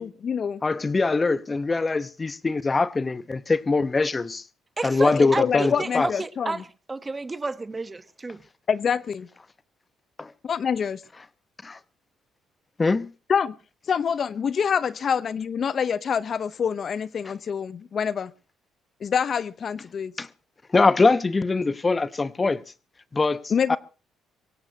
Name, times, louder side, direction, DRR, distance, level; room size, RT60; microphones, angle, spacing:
voice 1, 0.0-0.6 5.2-6.5 8.7-9.3 10.4-11.0 13.3-13.5 13.9-18.3 19.0-20.1 23.5-23.8, left 7 dB, 50° left, 0.8 m, -26 dB
voice 2, 0.6-4.4 4.8-6.1 10.2-10.3 11.6-11.8 12.8-13.1 20.2-20.3 20.7-22.6 23.1-23.4 23.7-23.8, left 3 dB, 30° left, 1.0 m, -22 dB
voice 3, 4.8-8.4, right 3 dB, 25° right, 1.0 m, -31 dB
23.5 x 17.0 x 2.8 m
supercardioid pair, 65°, 0 cm